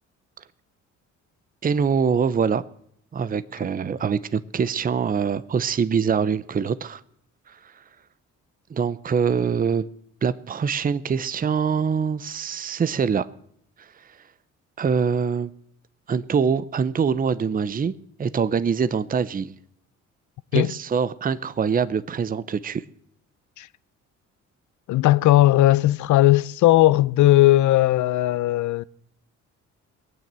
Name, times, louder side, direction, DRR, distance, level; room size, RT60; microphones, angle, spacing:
voice 1, 1.6-2.6 3.1-7.0 7.5-7.8 8.7-9.9 10.2-13.3 13.8-14.2 14.8-15.5 16.1-19.5 20.5-22.8, right 6 dB, 30° right, 0.7 m, -24 dB
voice 2, 24.9-28.8, left 15 dB, 75° left, 0.6 m, -17 dB
20.0 x 9.3 x 7.5 m
cardioid pair, 90°, 30 cm